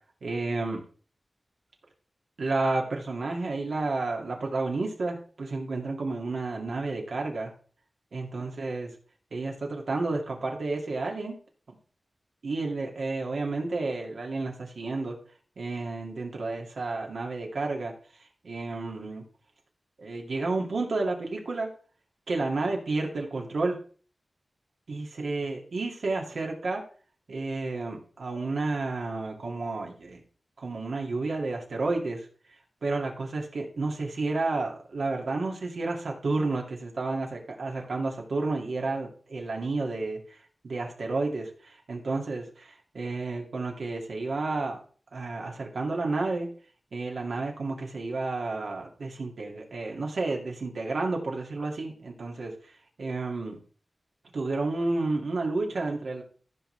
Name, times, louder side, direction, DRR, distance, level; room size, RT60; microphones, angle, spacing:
voice 1, 0.2-0.8 2.4-7.5 8.1-8.9 9.3-11.4 11.7-11.8 12.4-15.2 15.6-17.9 18.4-19.2 20.0-21.7 22.3-23.8 24.9-26.8 27.3-30.2 30.6-32.2 32.8-44.8 45.1-46.5 46.9-52.5 53.0-53.6 54.3-56.2, right 3 dB, 90° right, 1 dB, 2.4 m, -31 dB
15.0 x 6.2 x 3.4 m, 0.42 s
wide cardioid pair, 105°, 0 cm